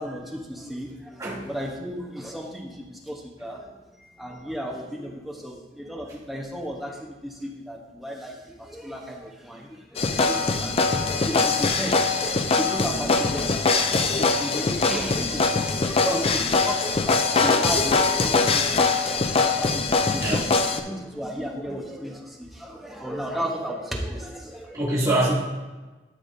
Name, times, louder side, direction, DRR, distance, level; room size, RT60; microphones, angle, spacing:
voice 1, 0.0-1.2 1.5-3.7 4.2-13.7 14.0-18.9 19.3-24.8, equal, ahead, -2 dB, 1.1 m, -34 dB
sound 1, 10.0-20.8, left 4 dB, 30° left, 0.5 m, -22 dB
voice 2, 14.9-15.2 20.1-20.5 24.7-25.3, right 1 dB, 20° right, -10 dB, 2.7 m, -25 dB
12.5 x 5.6 x 2.8 m, 1.2 s
head